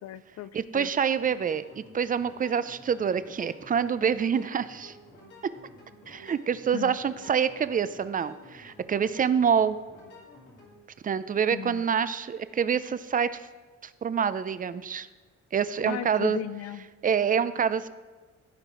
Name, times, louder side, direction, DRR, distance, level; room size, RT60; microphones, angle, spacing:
voice 1, 0.0-0.9 6.7-7.0 11.5-11.8 15.8-16.9, left 11 dB, 55° left, 15 dB, 0.5 m, -36 dB
voice 2, 0.5-4.9 6.1-9.8 11.0-13.5 13.8-15.1 15.5-16.4 17.0-17.9, right 7 dB, 30° right, 14 dB, 0.4 m, -26 dB
sound 1, 1.1-10.7, left 1 dB, 75° left, 3.1 m, -51 dB
14.5 x 4.9 x 3.8 m, 1.3 s
cardioid pair, 90°, 30 cm